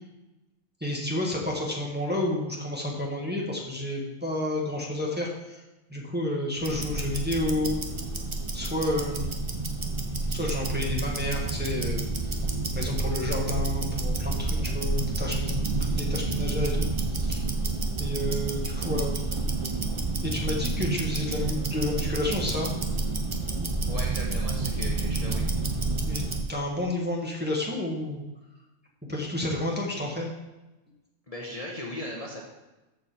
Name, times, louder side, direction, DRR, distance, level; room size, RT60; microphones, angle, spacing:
voice 1, 0.8-5.6 5.9-7.8 8.5-9.3 10.3-12.5 12.7-17.4 18.0-19.1 20.2-22.7 26.0-28.2 29.1-30.3, left 1 dB, 10° right, -2 dB, 1.4 m, -30 dB
Tick-tock, 6.6-26.5, right 3 dB, 25° right, 0.9 m, -29 dB
voice 2, 23.9-25.4 31.3-32.4, left 1 dB, 30° left, -3 dB, 1.2 m, -37 dB
14.0 x 5.0 x 4.5 m, 1.1 s
omnidirectional pair, 1.4 m